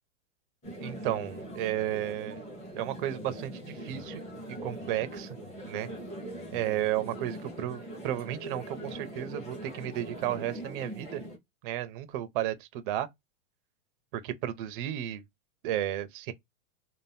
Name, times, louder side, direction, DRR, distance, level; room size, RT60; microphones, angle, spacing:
sound 1, 0.6-11.4, right 1 dB, 15° left, 0.8 m, -42 dB
voice 1, 0.8-2.4 2.8-4.2 4.5-5.4 5.7-5.9 6.5-11.2 11.6-13.1 14.1-15.2 15.6-16.3, right 12 dB, 40° right, 0.4 m, -33 dB
2.6 x 2.1 x 3.3 m
supercardioid pair, 150°, 42 cm